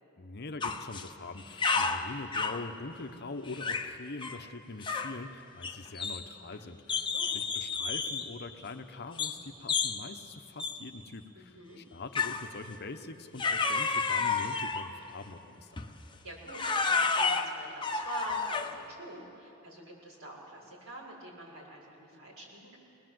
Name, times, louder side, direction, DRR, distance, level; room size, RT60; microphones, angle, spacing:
voice 1, 0.2-15.8, left 3 dB, 50° left, 7 dB, 0.9 m, -43 dB
sound 1, 0.6-1.1 1.4-2.7 3.5-3.9 4.2-4.4 4.8-5.2 5.6-6.5 6.9-8.3 9.2-9.4 9.7-10.0 10.6-10.8 12.1-12.5 13.4-14.9 15.8-16.0 16.5-18.8, left 4 dB, 25° left, 1.0 m, -31 dB
voice 2, 6.9-7.3 11.3-11.8 16.2-22.8, right 1 dB, 70° right, -4 dB, 6.5 m, -46 dB
23.0 x 19.5 x 7.8 m, 3.0 s
head